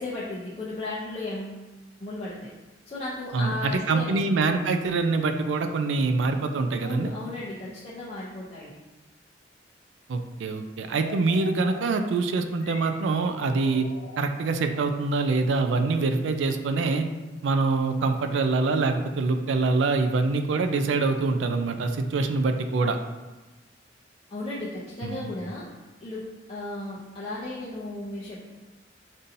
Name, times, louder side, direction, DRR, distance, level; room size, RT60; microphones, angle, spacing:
voice 1, 0.0-1.6 2.0-2.4 2.9-4.2 6.8-8.7 24.3-25.7 26.0-26.2 26.5-28.4, left 2 dB, 35° left, -9 dB, 0.6 m, -35 dB
voice 2, 3.3-7.1 10.1-13.9 14.2-17.0 17.4-23.0 25.0-25.3, right 3 dB, 75° right, 7 dB, 0.4 m, -25 dB
sound 1, 10.9-17.6, left 4 dB, 80° left, 0.4 m, -45 dB
5.3 x 2.7 x 2.6 m, 1.1 s
head